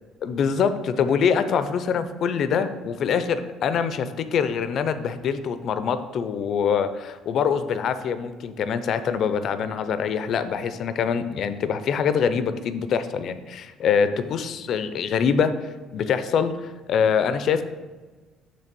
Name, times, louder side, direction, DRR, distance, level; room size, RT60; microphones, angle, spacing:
voice 1, 0.2-15.5 15.9-17.6, left 7 dB, 50° left, 11 dB, 0.4 m, -24 dB
6.7 x 3.2 x 6.0 m, 1.3 s
cardioid pair, 140°, 0 cm